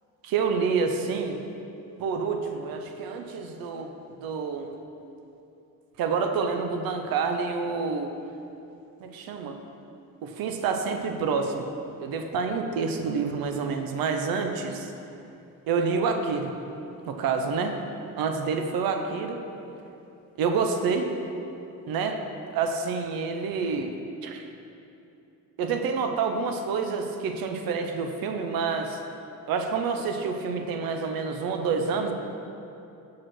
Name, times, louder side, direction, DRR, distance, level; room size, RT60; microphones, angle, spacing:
voice 1, 0.2-1.4 2.0-3.9 4.2-4.7 6.0-8.1 9.0-9.6 10.2-11.7 12.0-14.9 15.7-16.5 17.1-17.8 18.2-19.4 20.4-21.1 21.9-22.2 22.5-23.9 24.2-24.5 25.6-29.0 29.5-32.1, right 5 dB, 80° right, 5 dB, 0.7 m, -28 dB
6.2 x 4.9 x 6.1 m, 2.8 s
cardioid pair, 175°, 35 cm